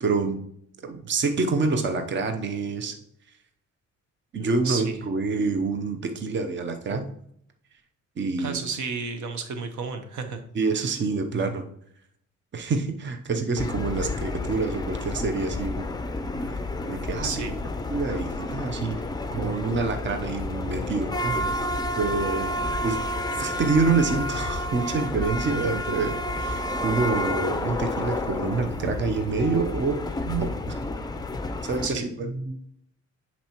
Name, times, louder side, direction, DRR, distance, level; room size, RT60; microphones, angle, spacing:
voice 1, 0.0-0.4 0.8-3.0 4.3-7.1 8.2-8.6 10.5-11.6 12.5-15.9 16.5-16.6 16.9-17.3 17.9-19.0 19.3-21.6 21.9-22.5 22.8-23.0 23.3-30.8 31.6-32.6, right 4 dB, 40° right, 6 dB, 0.8 m, -27 dB
voice 2, 4.6-5.0 8.4-10.4 10.8-10.9 17.2-17.6 31.8-32.1, right 5 dB, 75° right, 7 dB, 1.0 m, -32 dB
sound 1, 13.6-31.9, left 1 dB, 15° left, 0.5 m, -30 dB
10.0 x 4.3 x 3.0 m, 0.68 s
cardioid pair, 90°, 30 cm